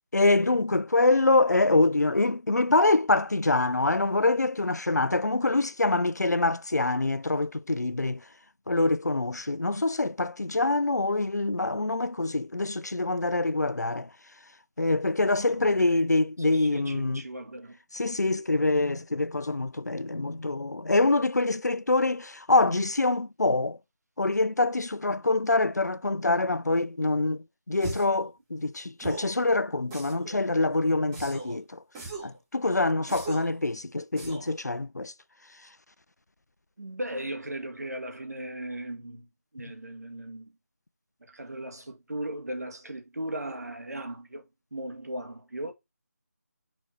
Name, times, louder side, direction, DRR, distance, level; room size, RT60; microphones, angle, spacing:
voice 1, 0.1-8.2 8.7-14.1 14.8-17.2 17.9-23.8 24.2-31.8 32.2-35.1, left 2 dB, 90° left, 0.6 m, -25 dB
voice 2, 15.5-16.1 16.4-17.8 36.8-39.3 39.5-40.5 41.2-44.4 44.7-45.7, right 1 dB, 75° right, 2.1 m, -37 dB
sound 1, 27.8-28.2 29.0-29.4 29.9-30.4 31.1-31.6 32.0-32.4 33.1-33.6 34.2-34.6, right 3 dB, 10° right, 1.3 m, -39 dB
6.3 x 4.4 x 4.0 m
figure-of-eight pair, 165°, 9 cm